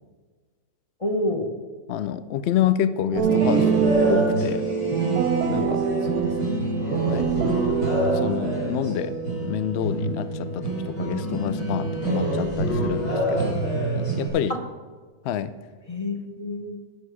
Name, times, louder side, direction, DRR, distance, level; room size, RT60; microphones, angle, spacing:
voice 1, 1.0-1.6 6.0-6.7 7.0-7.4 14.5-14.6 15.9-16.8, left 1 dB, 30° left, 4 dB, 0.6 m, -29 dB
voice 2, 1.9-4.6 5.5-5.8 7.1-7.4 7.8-9.1 9.4-13.6 13.9-14.5 15.2-15.5, left 10 dB, 90° left, 13 dB, 0.5 m, -28 dB
sound 1, 3.1-9.2, right 8 dB, 75° right, 1.0 m, -25 dB
sound 2, 3.2-14.3, right 1 dB, 60° left, 4.0 m, -26 dB
17.0 x 6.7 x 4.8 m, 1.5 s
omnidirectional pair, 1.7 m